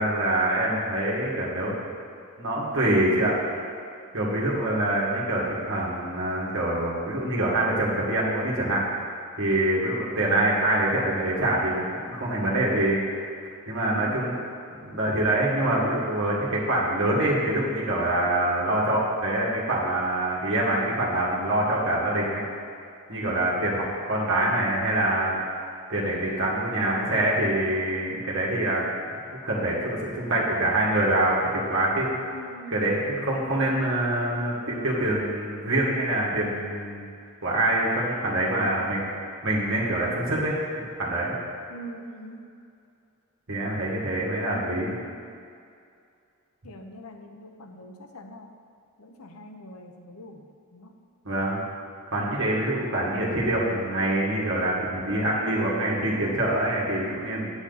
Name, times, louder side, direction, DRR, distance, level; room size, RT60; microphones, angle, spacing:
voice 1, 0.0-1.7 2.4-3.3 4.1-8.8 9.4-13.3 13.7-14.3 14.7-22.4 23.1-25.3 25.9-28.9 29.3-32.1 32.7-37.1 37.4-39.0 39.4-40.5 41.0-41.3 43.5-44.9 51.3-51.6 52.1-57.5, right 1 dB, 60° right, -4 dB, 2.0 m, -25 dB
voice 2, 13.8-14.3 32.3-33.1 41.7-42.5 44.5-45.1 46.6-48.5 49.0-51.0, equal, 85° left, 5 dB, 0.8 m, -43 dB
8.8 x 8.0 x 4.1 m, 2.4 s
head